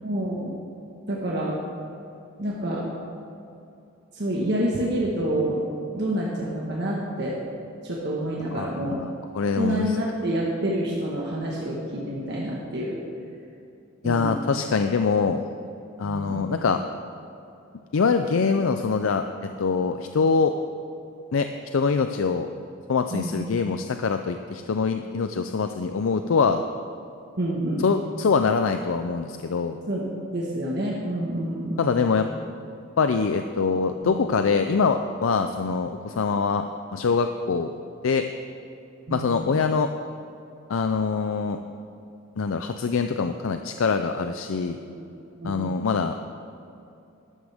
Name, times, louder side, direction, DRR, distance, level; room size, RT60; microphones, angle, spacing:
voice 1, 0.0-0.5 1.1-1.5 2.4-2.8 4.1-5.6 5.9-7.4 7.8-9.0 9.5-13.0 14.0-14.4 16.0-16.5 23.1-23.3 23.6-23.7 27.4-27.8 29.9-30.0 30.3-32.1 34.0-34.1 39.1-39.5 44.9-45.1 45.4-45.6, right 1 dB, 55° right, -4 dB, 1.5 m, -28 dB
voice 2, 8.5-10.0 14.0-15.4 16.0-16.8 17.9-20.5 21.3-22.5 22.9-26.6 27.8-29.8 31.8-32.3 33.0-36.7 36.9-37.7 38.0-38.2 39.1-39.9 40.7-41.6 42.4-44.8 45.4-46.2, left 5 dB, 75° left, 7 dB, 0.5 m, -24 dB
12.5 x 12.5 x 3.5 m, 2.7 s
head